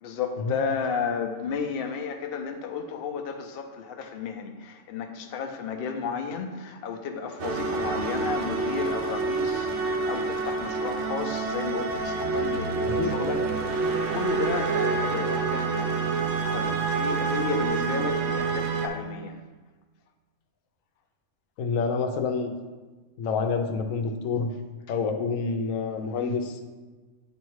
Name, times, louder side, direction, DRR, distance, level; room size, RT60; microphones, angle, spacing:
voice 1, 0.0-19.4 24.9-25.0, left 5 dB, 55° left, 5 dB, 0.8 m, -33 dB
sound 1, 7.4-18.9, right 4 dB, 65° right, 0.9 m, -27 dB
voice 2, 21.6-22.5 23.2-24.5 24.9-26.6, left 5 dB, 90° left, 5 dB, 1.1 m, -27 dB
8.7 x 3.1 x 4.7 m, 1.3 s
omnidirectional pair, 1.3 m